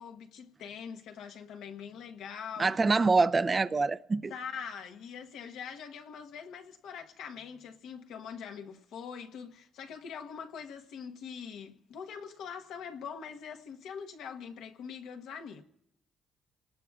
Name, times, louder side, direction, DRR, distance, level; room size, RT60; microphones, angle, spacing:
voice 1, 0.0-2.8 4.3-15.6, left 7 dB, 85° left, 1.1 m, -43 dB
voice 2, 2.6-4.3, right 3 dB, 30° right, 0.5 m, -25 dB
29.5 x 19.0 x 2.4 m
cardioid pair, 90°, 0 cm